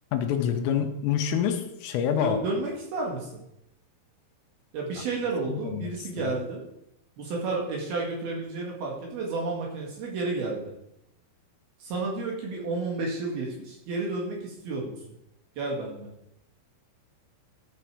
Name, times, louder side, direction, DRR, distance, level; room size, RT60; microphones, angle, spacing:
voice 1, 0.1-2.4 5.0-5.1 5.5-6.3, left 8 dB, 85° left, 5 dB, 3.5 m, -27 dB
voice 2, 2.2-3.4 4.7-6.6 7.2-10.7 11.8-15.0 15.6-16.1, right 3 dB, 60° right, -2 dB, 3.3 m, -31 dB
14.0 x 6.9 x 4.9 m, 0.83 s
omnidirectional pair, 5.8 m